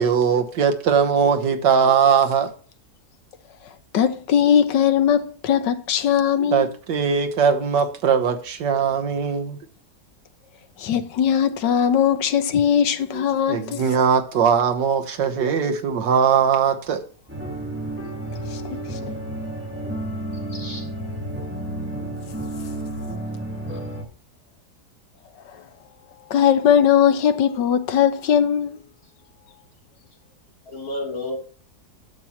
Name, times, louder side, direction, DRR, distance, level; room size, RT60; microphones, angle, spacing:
voice 1, 0.0-2.5 6.4-9.6 13.1-13.2 13.5-17.0, right 6 dB, 80° right, 1.8 m, -20 dB
voice 2, 3.9-6.7 10.8-13.8 18.5-19.1 26.3-28.8, left 8 dB, 85° left, 1.6 m, -19 dB
sound 1, 17.3-24.0, right 1 dB, 5° right, 2.0 m, -31 dB
voice 3, 20.5-20.9 30.7-31.4, left 1 dB, 55° left, 3.9 m, -31 dB
11.5 x 7.2 x 3.0 m
omnidirectional pair, 1.8 m